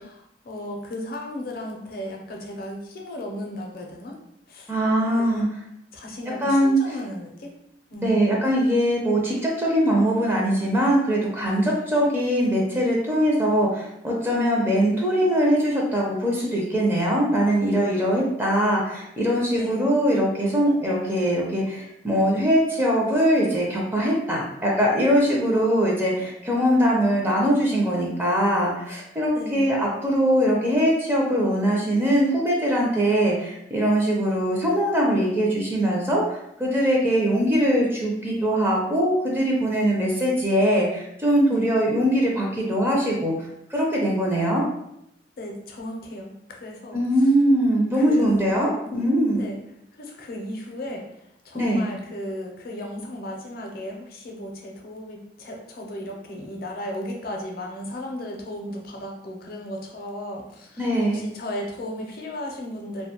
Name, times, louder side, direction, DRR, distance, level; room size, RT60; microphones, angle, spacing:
voice 1, 0.0-4.1 4.5-4.7 5.1-5.3 5.9-7.5 7.9-8.2 19.5-19.8 29.4-29.6 41.5-41.6 45.4-47.0 47.9-48.6 48.8-49.0 49.4-49.6 49.9-51.0 51.4-63.1, left 1 dB, 55° left, 1 dB, 0.5 m, -35 dB
voice 2, 4.7-5.5 6.4-6.8 8.0-43.3 43.7-44.6 46.9-49.5 51.5-51.8 60.8-61.2, equal, 15° right, -3 dB, 0.4 m, -22 dB
2.4 x 2.2 x 2.8 m, 0.79 s
head